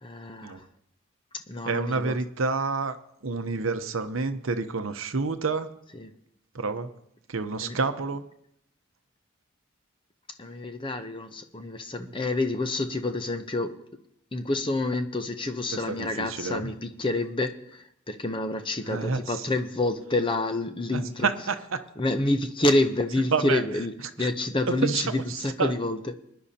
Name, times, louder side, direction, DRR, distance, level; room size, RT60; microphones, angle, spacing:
voice 1, 0.0-0.6 1.5-2.2 6.0-6.1 7.6-7.8 10.4-13.8 14.3-21.3 22.0-26.0, left 2 dB, 25° left, 8 dB, 0.7 m, -28 dB
voice 2, 1.6-3.0 3.2-5.8 6.5-6.9 7.3-8.2 15.7-16.7 18.8-19.5 20.9-21.8 23.3-23.6 24.2-24.3 24.7-25.7, right 4 dB, 70° right, 9 dB, 0.8 m, -29 dB
23.0 x 10.5 x 2.8 m, 0.75 s
head